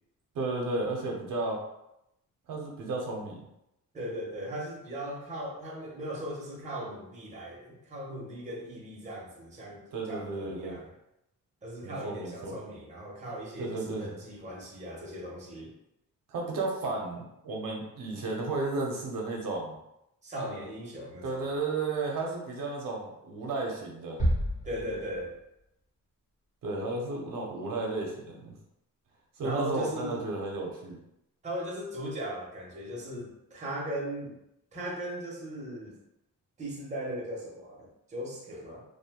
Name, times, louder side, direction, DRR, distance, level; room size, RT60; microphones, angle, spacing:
voice 1, 0.3-1.6 2.5-3.4 9.9-10.8 11.8-12.6 13.6-14.1 16.3-19.8 21.2-24.2 26.6-28.5 29.4-31.0, right 3 dB, 70° right, 0 dB, 0.6 m, -33 dB
voice 2, 3.9-10.9 11.6-15.7 20.2-21.5 24.6-25.3 29.4-30.2 31.4-34.4 34.7-35.9 36.6-38.8, right 1 dB, 20° right, -4 dB, 0.7 m, -38 dB
sound 1, 24.2-25.6, equal, 20° left, 0.8 m, -30 dB
2.6 x 2.1 x 2.8 m, 0.84 s
wide cardioid pair, 150°, 34 cm